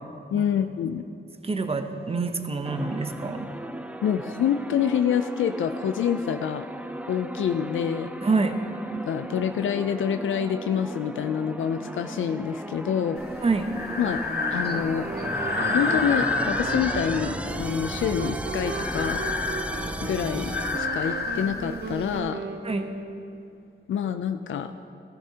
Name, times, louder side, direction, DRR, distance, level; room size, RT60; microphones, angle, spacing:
voice 1, 0.3-1.0 4.0-6.7 7.1-8.1 9.1-13.4 14.0-14.2 14.5-15.1 15.7-19.3 20.0-22.4 23.9-24.7, left 8 dB, 80° left, 8 dB, 0.4 m, -27 dB
voice 2, 1.4-3.5 8.2-8.6 13.4-13.7 22.6-22.9, right 4 dB, 30° right, 7 dB, 0.8 m, -26 dB
sound 1, 2.7-20.8, right 1 dB, 5° right, 0.4 m, -35 dB
Breathing, 13.2-22.2, left 3 dB, 55° left, 1.2 m, -30 dB
sound 2, 15.0-23.5, right 4 dB, 60° right, 0.8 m, -37 dB
14.5 x 14.0 x 2.9 m, 2.7 s
wide cardioid pair, 95°, 20 cm